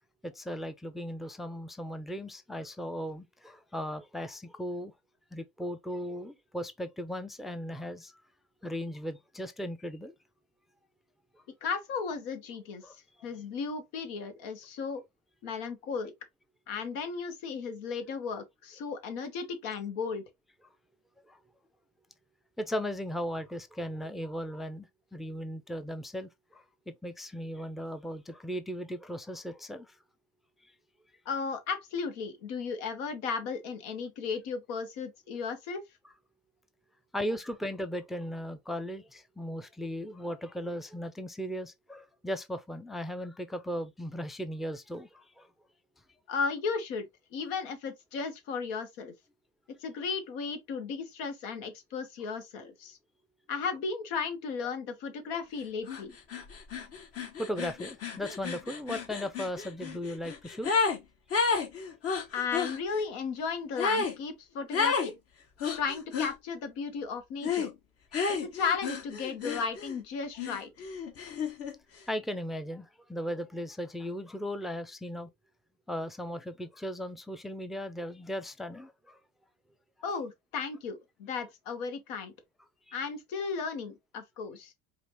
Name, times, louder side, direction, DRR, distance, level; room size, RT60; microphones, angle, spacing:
voice 1, 0.2-4.9 5.3-8.1 8.6-10.1 12.8-12.9 21.3-21.4 22.6-29.9 37.1-45.5 57.4-60.7 65.7-65.8 72.1-75.3 75.9-79.2 82.9-83.0, equal, ahead, 0.5 m, -37 dB
voice 2, 11.6-13.0 13.2-15.0 15.4-16.1 16.7-20.2 31.2-35.8 46.3-49.1 49.8-53.0 53.5-56.1 62.3-65.1 65.7-67.7 68.3-70.9 80.0-82.3 82.9-84.7, left 5 dB, 80° left, 1.2 m, -35 dB
sound 1, 55.9-56.0 56.3-61.0 61.3-62.8 63.8-64.2 64.7-65.1 65.6-66.3 67.4-67.7 68.1-70.0 70.4-71.7, left 5 dB, 50° left, 1.3 m, -31 dB
4.9 x 2.5 x 3.0 m
supercardioid pair, 95°, 31 cm